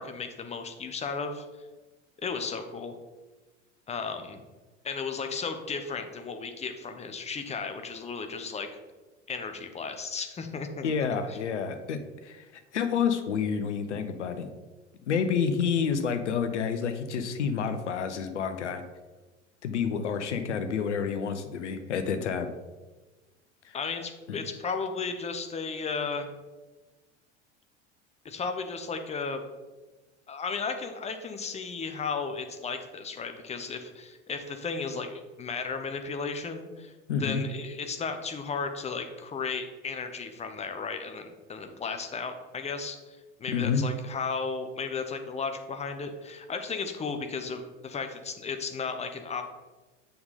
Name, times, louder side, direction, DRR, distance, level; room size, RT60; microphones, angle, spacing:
voice 1, 0.0-1.4 2.2-2.9 3.9-4.4 4.8-8.7 9.3-10.9 11.3-11.4 23.7-26.3 28.2-29.4 30.3-36.9 37.2-49.4, left 5 dB, 20° left, 7 dB, 0.8 m, -34 dB
voice 2, 10.8-12.5 12.7-14.5 15.1-18.8 19.6-22.5 23.6-23.8 24.3-24.4 37.1-37.4 43.5-43.8, left 6 dB, 70° left, 9 dB, 0.8 m, -29 dB
6.9 x 5.1 x 4.1 m, 1.2 s
figure-of-eight pair, 70°, 37 cm